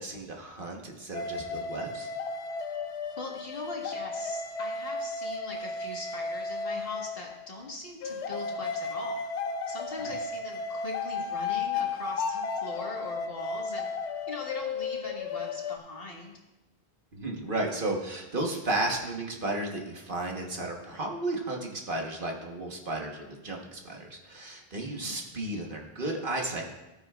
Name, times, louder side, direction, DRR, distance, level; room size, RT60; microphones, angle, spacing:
voice 1, 0.0-2.1 10.0-10.1 17.1-26.7, right 2 dB, 55° right, 0 dB, 1.4 m, -33 dB
sound 1, 1.1-7.5 8.0-15.8, left 4 dB, 80° left, 0.9 m, -34 dB
voice 2, 3.2-9.3 9.7-13.9 14.3-16.3 25.0-25.2, left 2 dB, 60° left, -1 dB, 1.9 m, -41 dB
14.5 x 9.0 x 2.4 m, 1.0 s
omnidirectional pair, 1.1 m